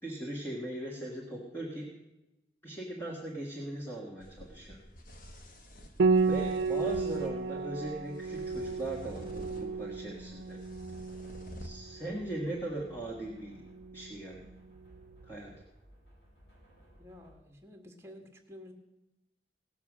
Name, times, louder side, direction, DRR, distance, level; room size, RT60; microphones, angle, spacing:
voice 1, 0.0-1.9 2.6-4.8 6.2-10.6 11.6-13.6 13.9-14.5 15.3-15.5, right 1 dB, 15° left, -3 dB, 1.6 m, -39 dB
sound 1, 4.2-11.7, equal, 50° left, 1.3 m, -49 dB
Piano, 6.0-15.3, right 4 dB, 80° right, 0.4 m, -33 dB
sound 2, 8.2-17.3, equal, 85° left, 5.7 m, -58 dB
voice 2, 17.0-18.7, left 1 dB, 15° right, 3 dB, 1.7 m, -51 dB
17.5 x 7.0 x 6.1 m, 0.97 s
head